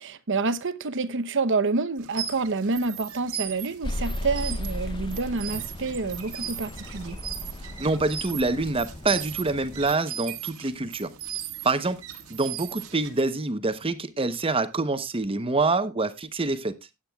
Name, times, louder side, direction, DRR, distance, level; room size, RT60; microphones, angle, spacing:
voice 1, 0.0-7.2, right 3 dB, 60° right, 0.8 m, -28 dB
sound 1, 2.0-13.3, right 10 dB, 80° right, 1.7 m, -38 dB
sound 2, 3.8-9.9, left 1 dB, 20° left, 0.7 m, -36 dB
voice 2, 7.8-11.1 11.6-12.0 12.3-16.7, right 3 dB, 25° right, 0.9 m, -26 dB
18.0 x 8.9 x 2.3 m
head